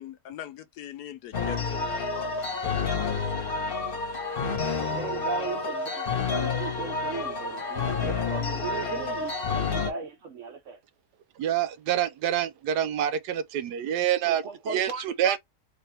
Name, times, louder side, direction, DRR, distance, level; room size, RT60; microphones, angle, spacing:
voice 1, 0.0-3.7, left 10 dB, 75° left, 1.1 m, -43 dB
sound 1, 1.3-9.9, left 4 dB, 40° left, 1.0 m, -29 dB
voice 2, 4.9-10.8 14.2-15.4, right 5 dB, 60° right, 0.9 m, -37 dB
voice 3, 11.4-14.4 14.7-15.4, right 10 dB, 80° right, 1.2 m, -26 dB
3.4 x 2.9 x 3.2 m
omnidirectional pair, 1.7 m